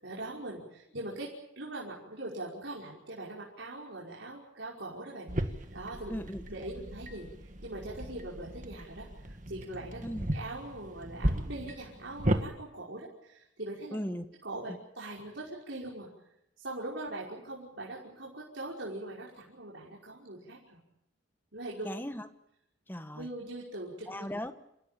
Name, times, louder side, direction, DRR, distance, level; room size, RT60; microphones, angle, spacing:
voice 1, 0.0-1.3 1.6-6.1 6.5-7.3 7.6-10.0 10.3-14.0 14.4-16.1 16.6-20.8 21.5-21.9 23.1-24.3, right 2 dB, 65° right, -4 dB, 5.5 m, -41 dB
sound 1, 5.3-12.4, right 1 dB, 40° right, 2.0 m, -35 dB
voice 2, 6.1-6.4 10.0-10.3 13.9-14.3 14.7-14.8 21.8-22.3 22.9-23.3 24.1-24.5, equal, 10° left, 9 dB, 1.4 m, -37 dB
28.5 x 17.0 x 9.0 m, 0.82 s
head